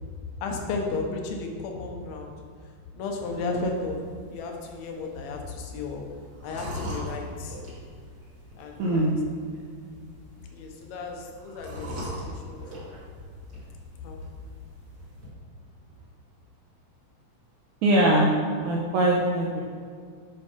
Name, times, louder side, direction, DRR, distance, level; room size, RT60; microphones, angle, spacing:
voice 1, 0.4-2.3 2.9-4.0 4.3-6.0 6.4-7.6 8.6-9.1 10.5-12.6 14.0-14.3, left 3 dB, 75° left, 2 dB, 1.6 m, -33 dB
sound 1, 3.2-15.3, left 1 dB, 30° right, 2.0 m, -43 dB
voice 2, 8.8-9.2 17.8-18.3 18.6-19.6, right 1 dB, 75° right, -2 dB, 1.8 m, -22 dB
8.0 x 5.5 x 4.9 m, 2.1 s
omnidirectional pair, 4.2 m